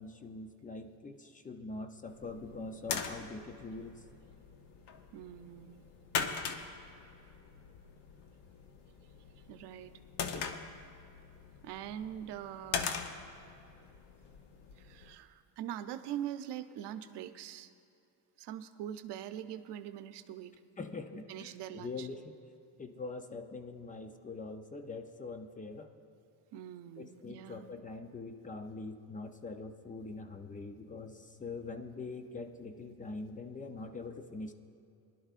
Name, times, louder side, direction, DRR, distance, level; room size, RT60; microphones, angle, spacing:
voice 1, 0.0-4.0 20.8-22.4 22.8-25.9 27.0-34.5, left 3 dB, 20° left, 7 dB, 0.5 m, -43 dB
sound 1, 2.1-15.2, left 6 dB, 70° left, 0.9 m, -42 dB
voice 2, 5.1-5.9 9.5-10.0 11.6-12.9 14.8-17.7 18.4-20.5 21.3-22.1 26.5-27.7, right 10 dB, 90° right, 10 dB, 0.7 m, -43 dB
21.0 x 11.5 x 2.5 m, 2.6 s
cardioid pair, 140°, 40 cm